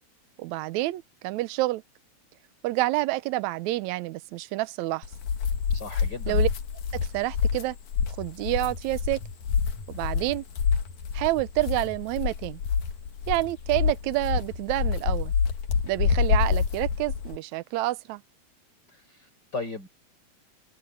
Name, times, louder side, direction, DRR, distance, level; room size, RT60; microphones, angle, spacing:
voice 1, 0.4-1.8 2.6-5.1 6.3-6.5 6.9-7.8 8.2-9.2 9.9-10.4 11.1-12.6 13.3-15.3 15.8-18.2, right 18 dB, 80° right, 2.0 m, -28 dB
sound 1, 5.0-17.4, left 6 dB, 85° left, 3.3 m, -27 dB
voice 2, 5.7-6.4 18.9-19.9, left 3 dB, 35° left, 7.5 m, -37 dB
omnidirectional pair, 3.3 m